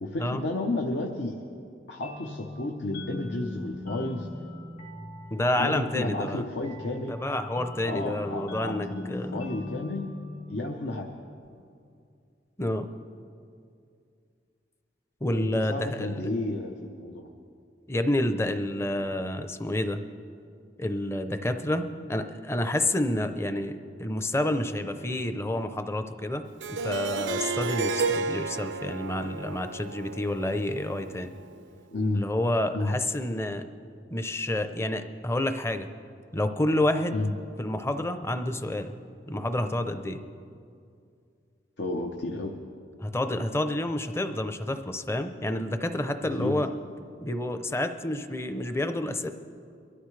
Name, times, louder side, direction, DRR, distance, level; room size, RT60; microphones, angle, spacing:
voice 1, 0.0-1.4 1.9-4.3 5.6-7.2 7.8-10.1 10.5-11.1 15.3-17.3 31.9-32.2 32.7-32.9 37.1-37.3 41.8-42.5 46.4-46.6, left 2 dB, 75° left, 2 dB, 0.9 m, -32 dB
sound 1, 2.0-11.4, left 2 dB, 55° left, 2.7 m, -41 dB
voice 2, 5.3-6.4 7.1-9.4 12.6-12.9 15.2-16.3 17.9-20.0 20.8-31.3 32.1-33.6 34.1-35.9 36.3-37.2 37.6-39.0 39.3-40.2 43.0-46.7 47.2-49.3, left 1 dB, 15° left, 8 dB, 0.6 m, -29 dB
Harp, 26.6-31.6, right 4 dB, 85° right, 0.5 m, -32 dB
23.5 x 13.0 x 3.3 m, 2.4 s
head